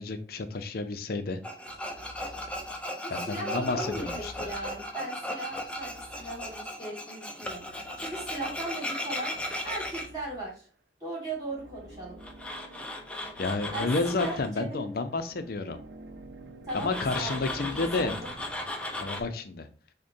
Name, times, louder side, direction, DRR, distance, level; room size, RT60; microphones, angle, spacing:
voice 1, 0.0-1.4 3.1-4.3 13.4-15.8 16.7-18.2 19.0-19.7, left 3 dB, 55° left, 8 dB, 0.5 m, -30 dB
Tools, 1.4-10.1 12.2-14.5 16.7-19.2, left 1 dB, 5° left, 0.5 m, -36 dB
sound 1, 1.7-3.0 3.6-6.8 7.4-8.8 9.3-10.8 11.3-19.3, right 1 dB, 80° right, 0.5 m, -50 dB
voice 2, 3.0-9.3 9.6-10.6 11.0-12.2 13.7-14.9 16.7-18.3, right 2 dB, 20° right, -5 dB, 1.6 m, -38 dB
6.3 x 2.2 x 2.6 m, 0.38 s
head